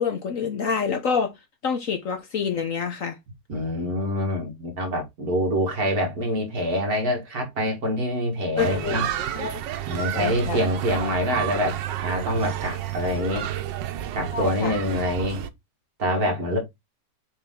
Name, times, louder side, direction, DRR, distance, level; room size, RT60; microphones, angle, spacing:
voice 1, 0.0-1.3 1.6-3.2 8.6-9.0 9.4-9.6 10.1-10.6 14.3-14.8, left 6 dB, 55° left, 1.2 m, -27 dB
voice 2, 3.5-9.1 9.9-13.5 14.1-15.4 16.0-16.6, equal, 55° right, 2.3 m, -26 dB
sound 1, 8.6-15.5, right 12 dB, 85° right, 1.4 m, -31 dB
7.2 x 3.7 x 3.7 m
omnidirectional pair, 1.9 m